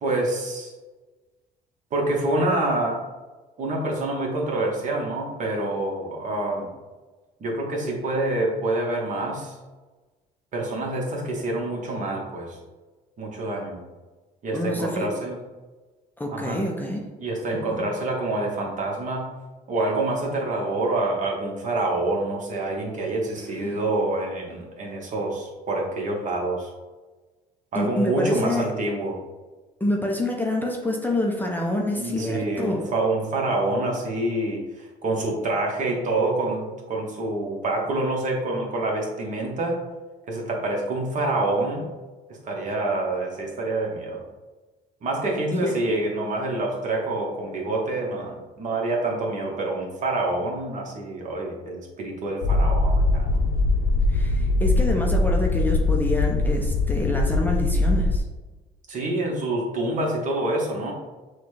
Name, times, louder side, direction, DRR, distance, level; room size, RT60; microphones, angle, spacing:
voice 1, 0.0-0.7 1.9-3.0 3.6-6.7 7.4-9.6 10.5-12.6 13.2-13.8 14.4-15.4 16.3-16.6 17.2-19.3 19.7-26.7 27.7-29.2 32.0-39.8 40.3-41.9 42.3-44.2 45.0-53.4 58.9-60.9, right 2 dB, 50° right, -1 dB, 1.2 m, -27 dB
voice 2, 14.5-15.1 16.2-17.0 17.5-17.9 23.6-23.8 27.7-28.7 29.8-32.8 45.5-45.8 54.1-58.2, left 1 dB, 10° left, 0 dB, 0.5 m, -27 dB
sound 1, 52.4-58.2, left 2 dB, 60° left, 0.5 m, -22 dB
6.1 x 2.3 x 3.2 m, 1.2 s
cardioid pair, 110°, 17 cm